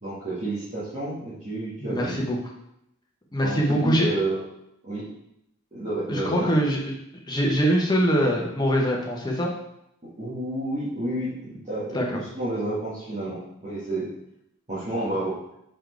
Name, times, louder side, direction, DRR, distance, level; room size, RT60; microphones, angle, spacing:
voice 1, 0.0-2.2 3.4-4.4 4.8-5.1 5.7-6.6 10.2-14.1 14.7-15.4, right 2 dB, 35° right, -11 dB, 1.8 m, -30 dB
voice 2, 1.8-2.4 3.3-4.1 6.1-6.9 7.3-9.5 11.9-12.2, equal, 20° left, -1 dB, 1.0 m, -23 dB
5.1 x 4.5 x 4.6 m, 0.80 s
head